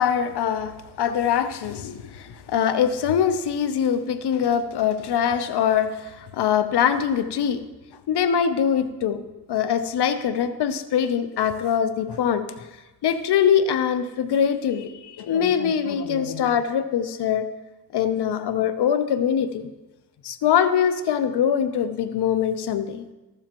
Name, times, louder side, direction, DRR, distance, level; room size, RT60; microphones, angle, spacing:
voice 1, 0.0-7.6 8.1-9.2 9.5-12.5 13.0-17.5 17.9-19.7 20.2-23.0, left 8 dB, 85° left, 11 dB, 0.7 m, -23 dB
13.5 x 12.5 x 3.0 m, 1.1 s
cardioid pair, 70°, 39 cm